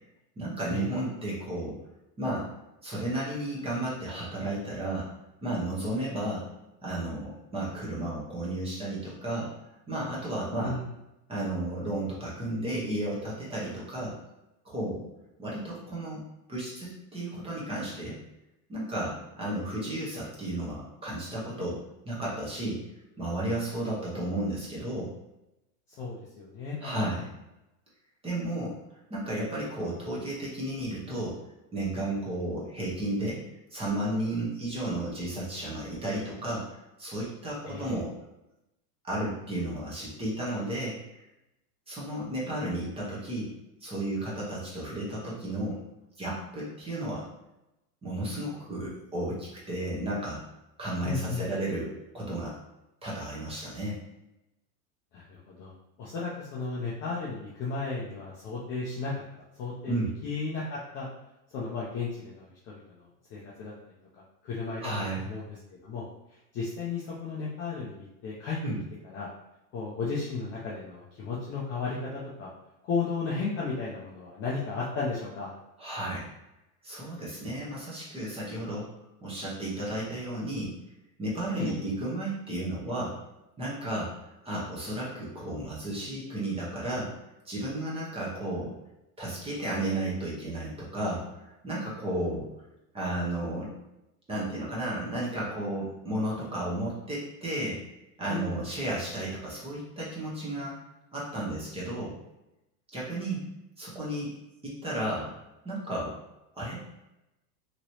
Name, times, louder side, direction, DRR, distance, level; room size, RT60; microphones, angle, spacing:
voice 1, 0.4-1.8 2.2-2.5 2.8-5.1 5.4-6.4 6.8-9.5 9.9-10.8 11.3-14.2 14.6-15.0 15.4-18.2 18.7-22.8 23.2-25.1 26.8-27.3 28.2-28.8 29.1-31.4 31.7-33.4 33.7-38.1 39.0-41.2 41.9-43.5 43.8-45.8 46.2-47.3 48.0-50.4 50.8-52.6 53.0-54.0 59.9-60.1 64.8-65.3 68.6-68.8 75.8-76.3 76.8-78.9 79.2-80.7 81.2-83.2 83.6-84.1 84.4-87.1 87.4-88.7 89.2-92.5 92.9-93.7 94.3-97.8 98.2-100.8 101.1-102.2 102.9-103.4 103.8-104.3 104.6-105.3 105.6-106.2 106.5-106.8, right 1 dB, 10° right, -6 dB, 0.9 m, -33 dB
voice 2, 10.6-10.9 25.9-27.1 37.6-38.0 51.0-51.4 55.1-55.7 56.0-59.1 59.6-59.9 60.2-61.1 61.5-63.7 64.1-66.0 66.5-68.6 69.1-69.3 69.7-72.5 72.8-75.5 81.5-81.8 98.3-98.6, left 4 dB, 25° left, -6 dB, 0.4 m, -34 dB
3.0 x 2.9 x 2.7 m, 0.92 s
supercardioid pair, 130°, 48 cm